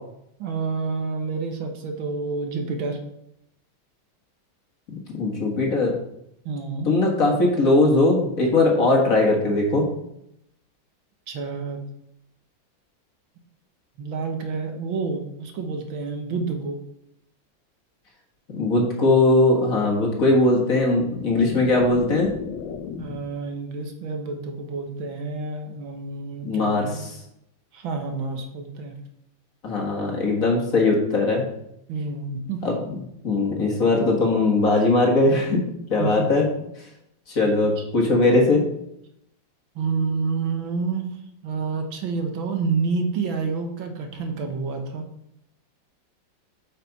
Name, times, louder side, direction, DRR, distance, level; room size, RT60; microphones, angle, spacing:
voice 1, 0.4-3.0 6.5-6.9 11.3-11.8 14.0-16.8 23.0-27.1 27.7-29.0 31.9-32.6 36.0-36.3 37.4-37.8 38.1-38.5 39.8-41.2 41.4-45.1, right 4 dB, 85° right, 5 dB, 1.9 m, -29 dB
voice 2, 5.1-6.0 6.9-9.9 18.5-22.3 26.4-27.2 29.6-31.4 32.6-32.7 33.2-35.6 35.9-36.5 37.3-38.6, left 2 dB, 45° left, 0 dB, 1.9 m, -20 dB
sound 1, 20.9-23.5, left 7 dB, 80° left, 1.4 m, -35 dB
8.9 x 5.9 x 4.1 m, 0.78 s
omnidirectional pair, 2.1 m